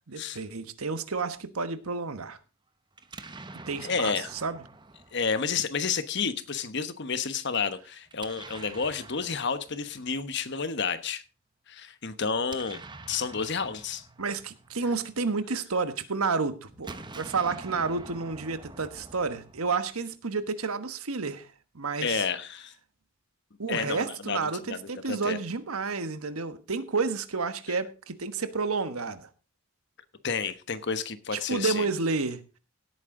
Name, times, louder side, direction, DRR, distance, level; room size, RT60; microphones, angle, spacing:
voice 1, 0.1-2.4 3.7-4.1 4.4-4.6 14.2-21.5 21.7-22.2 23.6-29.3 31.3-32.4, right 4 dB, 90° right, 1.3 m, -30 dB
Explosion, 2.9-6.0 8.1-10.3 12.2-15.6 16.7-20.1, right 3 dB, 20° right, 0.9 m, -47 dB
voice 2, 3.8-4.3 5.1-11.2 11.7-12.8 13.1-14.0 22.0-22.7 23.7-25.4 30.2-31.9, left 5 dB, 55° left, 1.1 m, -30 dB
17.0 x 8.8 x 3.8 m
head